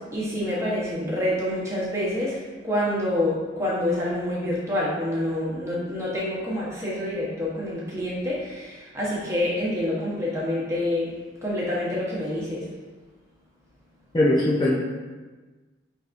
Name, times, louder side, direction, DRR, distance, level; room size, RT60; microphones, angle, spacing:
voice 1, 0.0-11.1 11.4-12.7, left 1 dB, 15° right, -6 dB, 1.0 m, -27 dB
voice 2, 14.1-14.7, left 1 dB, 20° left, -6 dB, 0.5 m, -20 dB
5.7 x 3.4 x 2.5 m, 1.3 s
head